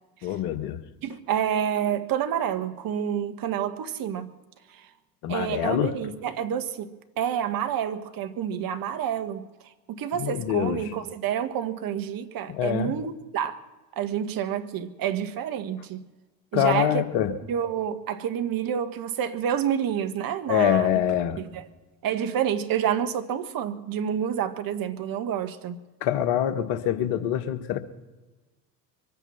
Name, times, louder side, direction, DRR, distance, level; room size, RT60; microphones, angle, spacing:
voice 1, 0.2-0.8 5.2-5.9 10.1-10.9 12.5-12.9 16.5-17.3 20.5-21.4 26.0-27.8, left 10 dB, 60° left, 1.7 m, -25 dB
voice 2, 1.0-4.3 5.3-6.9 7.2-9.5 9.9-13.6 14.0-16.0 16.5-17.0 17.5-20.9 21.5-21.6 22.0-25.7, right 9 dB, 45° right, 1.6 m, -28 dB
24.0 x 9.0 x 5.8 m
hypercardioid pair, 75°, 47 cm